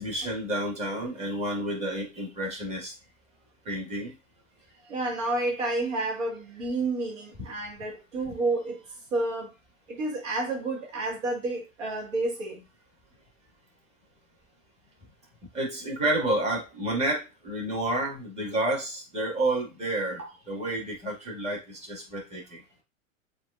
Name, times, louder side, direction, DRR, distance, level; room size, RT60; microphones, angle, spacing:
voice 1, 0.0-2.9 3.7-4.1 15.5-22.6, right 1 dB, 15° right, 1.9 m, -30 dB
voice 2, 4.8-9.5 9.9-12.6 20.2-20.3, right 2 dB, 65° right, 1.6 m, -30 dB
7.2 x 2.7 x 2.4 m
hypercardioid pair, 105°, 40 cm